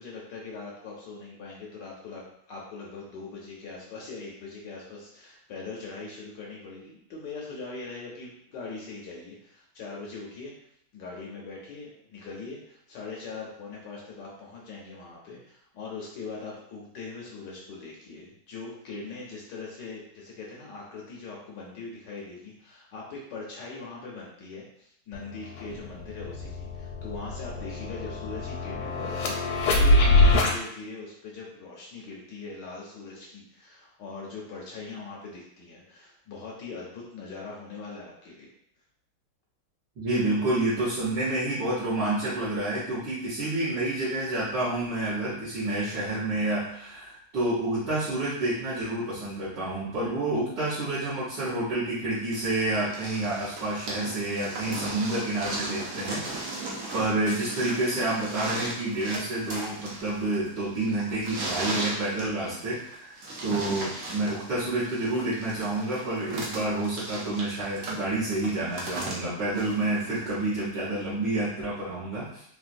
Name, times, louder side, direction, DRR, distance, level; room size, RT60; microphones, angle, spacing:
voice 1, 0.0-2.2 2.5-10.5 10.9-38.5, left 4 dB, 70° left, -3 dB, 1.1 m, -41 dB
sound 1, 25.1-25.2 25.6-30.6, left 2 dB, 85° left, 1.4 m, -24 dB
voice 2, 40.0-56.2 56.9-72.4, right 2 dB, 60° right, -13 dB, 1.6 m, -29 dB
sound 2, 52.3-70.4 71.4-71.5, right 2 dB, 75° right, 0.7 m, -37 dB
3.9 x 2.2 x 2.5 m, 0.70 s
omnidirectional pair, 2.3 m